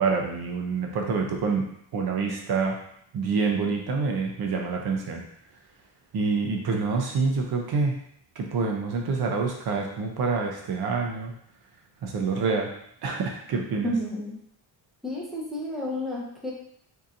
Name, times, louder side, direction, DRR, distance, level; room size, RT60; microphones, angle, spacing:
voice 1, 0.0-1.6 1.9-2.8 3.1-5.2 6.1-8.0 8.4-11.3 12.0-12.7 13.0-13.9, right 4 dB, 65° right, 1 dB, 0.7 m, -27 dB
voice 2, 13.8-14.4 15.0-16.5, equal, ahead, -4 dB, 0.8 m, -31 dB
3.7 x 2.8 x 2.6 m, 0.69 s
cardioid pair, 115°, 41 cm